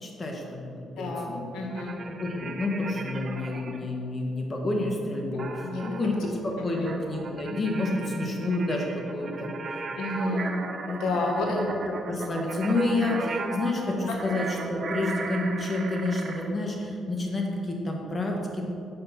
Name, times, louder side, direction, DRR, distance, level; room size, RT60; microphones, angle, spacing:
voice 1, 0.0-1.5 2.2-9.5 11.5-18.6, left 2 dB, 30° left, 0 dB, 1.7 m, -29 dB
voice 2, 1.0-1.3 1.5-1.9 5.3-5.8 6.6-6.9 9.9-10.5 10.9-11.6 14.1-14.2, left 2 dB, 80° left, 0 dB, 1.4 m, -30 dB
sound 1, 1.7-3.8 5.4-16.5, right 3 dB, 45° right, 0.9 m, -37 dB
9.7 x 5.6 x 5.9 m, 2.6 s
cardioid pair, 90°, 0 cm